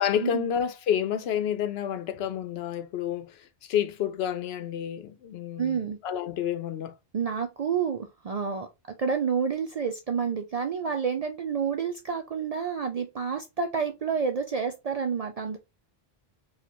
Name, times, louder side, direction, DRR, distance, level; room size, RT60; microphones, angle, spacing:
voice 1, 0.0-6.9, left 9 dB, 75° left, 0.8 m, -29 dB
voice 2, 5.6-6.0 7.1-8.7 9.0-15.6, right 6 dB, 55° right, 0.4 m, -29 dB
4.2 x 2.4 x 2.9 m
omnidirectional pair, 1.1 m